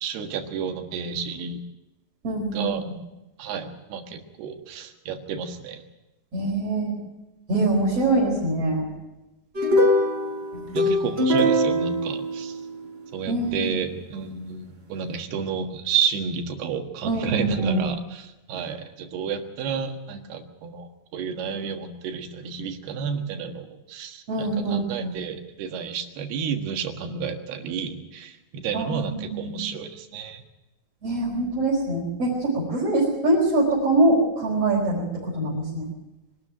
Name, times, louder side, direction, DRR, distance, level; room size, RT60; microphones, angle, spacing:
voice 1, 0.0-1.6 2.5-2.8 3.4-5.8 10.7-12.6 13.1-30.4, right 6 dB, 85° right, 5 dB, 3.6 m, -31 dB
voice 2, 2.2-2.9 6.3-7.0 7.5-8.9 10.5-10.9 13.3-13.7 17.0-17.8 24.3-25.1 28.7-29.6 31.0-35.9, right 2 dB, 40° right, -5 dB, 5.6 m, -24 dB
sound 1, 9.5-13.0, equal, 15° right, 4.9 m, -22 dB
22.5 x 12.5 x 9.1 m, 1.0 s
omnidirectional pair, 4.5 m